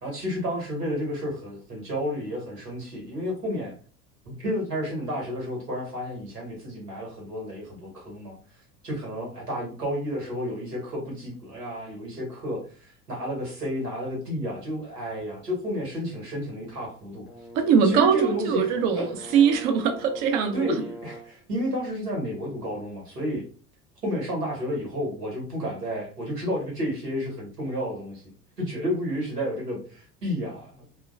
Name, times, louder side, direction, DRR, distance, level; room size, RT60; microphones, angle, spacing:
voice 1, 0.0-3.7 4.2-8.4 8.8-17.3 17.8-18.7 18.9-19.4 20.5-23.4 24.0-28.2 28.6-30.8, equal, 85° right, 1.2 m, -31 dB
Brass instrument, 17.2-21.4, equal, 80° left, 0.7 m, -42 dB
voice 2, 17.5-20.8, right 7 dB, 50° right, 0.7 m, -22 dB
2.9 x 2.1 x 2.4 m
figure-of-eight pair, 70°, 46 cm